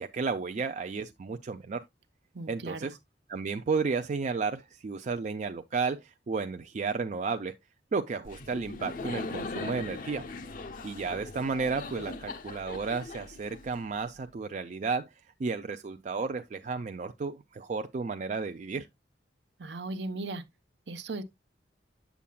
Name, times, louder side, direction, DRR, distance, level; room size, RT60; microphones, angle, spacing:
voice 1, 0.0-1.8 2.5-3.0 3.3-7.5 7.9-10.2 10.8-15.1 15.4-18.9, right 4 dB, 40° right, 0.4 m, -33 dB
voice 2, 2.3-2.9 19.6-20.4 20.9-21.2, right 2 dB, 70° right, 0.8 m, -37 dB
Laughter, 8.3-14.1, left 3 dB, 50° left, 0.6 m, -40 dB
8.4 x 7.0 x 2.2 m
head